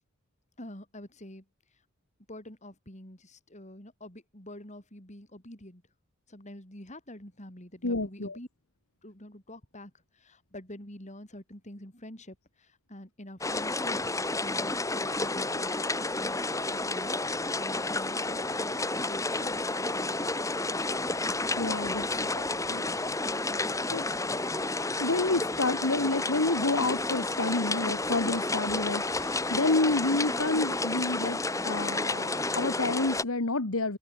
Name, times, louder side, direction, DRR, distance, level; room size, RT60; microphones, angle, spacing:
voice 1, 0.6-1.5 2.3-5.8 6.3-8.5 9.0-16.4 16.7-17.2 17.6-20.3 22.0-22.5 23.5-23.6, left 1 dB, 30° left, 5.4 m, -46 dB
voice 2, 7.8-8.4 21.6-22.0 22.3-22.4 22.7-22.8 23.9-24.0 25.0-34.0, left 2 dB, 70° left, 1.6 m, -29 dB
sound 1, 13.4-33.2, left 2 dB, 15° left, 2.8 m, -31 dB
open air
head